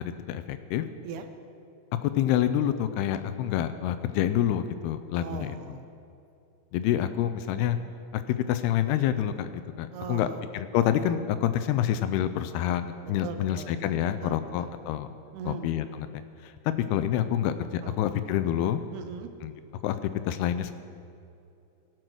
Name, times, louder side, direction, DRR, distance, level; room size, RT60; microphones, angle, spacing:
voice 1, 0.3-0.9 2.0-5.6 6.7-7.8 8.1-15.1 15.4-16.1 16.4-16.5 16.9-18.8 19.4-19.5 19.8-20.7, left 11 dB, 85° left, 11 dB, 2.5 m, -27 dB
voice 2, 5.2-5.9 9.9-10.4 13.0-14.7 15.3-15.7 17.8-18.0 18.9-19.3, right 6 dB, 80° right, 8 dB, 2.7 m, -40 dB
17.5 x 7.9 x 6.2 m, 2.7 s
omnidirectional pair, 4.8 m